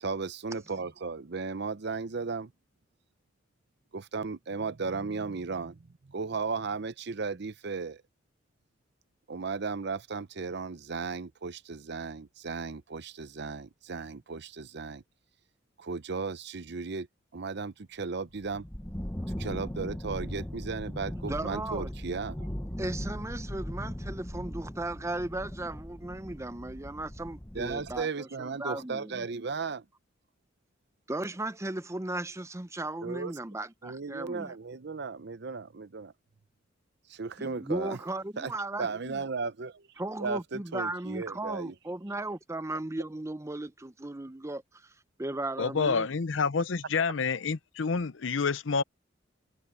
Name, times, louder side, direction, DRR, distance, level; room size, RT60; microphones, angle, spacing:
voice 1, 0.0-2.5 3.9-8.0 9.3-15.0 15.8-17.1 17.3-18.6 19.4-22.5 27.5-29.9 33.0-33.3 33.8-36.1 37.1-38.0 38.4-38.5 38.8-39.9 40.2-41.7, right 4 dB, 60° right, 0.7 m, -35 dB
sound 1, 18.3-28.0, equal, 10° left, 1.0 m, -39 dB
voice 2, 21.3-21.9 22.8-29.3 31.1-34.5 37.4-39.2 40.0-44.9 45.2-46.1, right 2 dB, 15° right, 0.7 m, -36 dB
voice 3, 45.6-48.8, left 5 dB, 75° left, 0.7 m, -28 dB
head